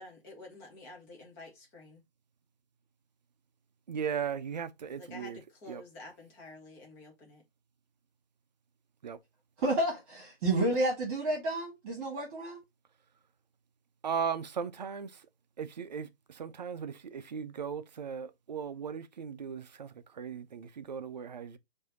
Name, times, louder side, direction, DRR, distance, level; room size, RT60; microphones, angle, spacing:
voice 1, 0.0-2.0 5.0-7.4, left 2 dB, 10° left, 0.6 m, -49 dB
voice 2, 3.9-5.4 5.7-5.8 9.0-9.2 14.0-15.3 15.6-21.6, right 7 dB, 45° right, 0.6 m, -37 dB
voice 3, 9.6-12.6, right 1 dB, 20° right, 1.6 m, -30 dB
4.6 x 2.8 x 4.0 m
figure-of-eight pair, 145°, 30 cm